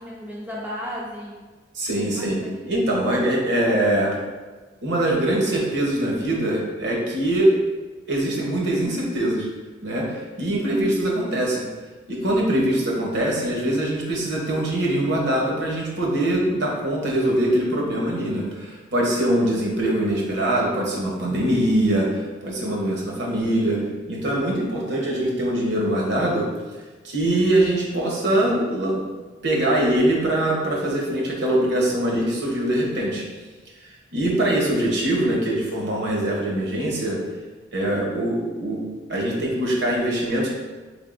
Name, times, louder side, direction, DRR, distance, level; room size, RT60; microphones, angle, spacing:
voice 1, 0.0-1.4 1.9-2.6, equal, 10° right, -6 dB, 0.4 m, -35 dB
voice 2, 1.7-4.1 4.8-7.5 8.1-9.5 9.8-11.6 12.1-23.8 24.1-26.5 27.0-29.0 29.4-33.2 33.8-37.2 37.7-38.8 39.1-40.5, right 1 dB, 65° right, -2 dB, 0.9 m, -23 dB
3.7 x 3.4 x 2.5 m, 1.3 s
head